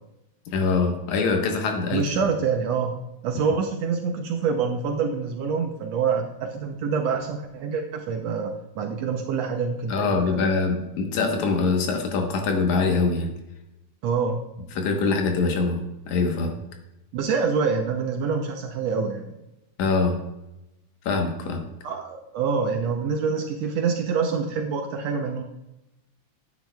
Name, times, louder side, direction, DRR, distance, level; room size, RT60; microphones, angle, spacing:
voice 1, 0.5-2.0 9.9-13.3 14.8-16.6 19.8-20.2 21.1-21.6, left 4 dB, 75° left, 3 dB, 2.5 m, -23 dB
voice 2, 1.9-3.0 3.2-10.5 14.0-14.4 17.1-19.4 21.8-25.4, right 5 dB, 75° right, 3 dB, 1.6 m, -26 dB
10.5 x 8.8 x 2.3 m, 0.93 s
omnidirectional pair, 3.5 m